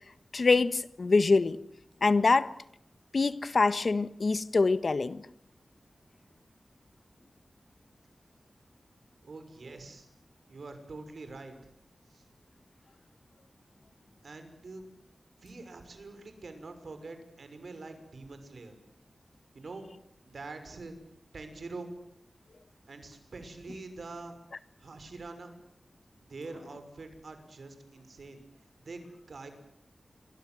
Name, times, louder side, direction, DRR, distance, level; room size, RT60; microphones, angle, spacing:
voice 1, 0.3-1.6 2.0-2.5 3.1-5.2, left 3 dB, 65° left, 1.4 m, -25 dB
voice 2, 9.2-10.1 10.5-11.5 12.1-12.2 14.2-14.9 15.4-18.8 19.5-19.9 20.3-20.9 21.3-21.9 22.9-24.3 24.8-25.5 26.3-28.4 28.8-29.5, right 3 dB, 80° right, 6.0 m, -45 dB
28.5 x 23.5 x 7.8 m
wide cardioid pair, 60°, 0 cm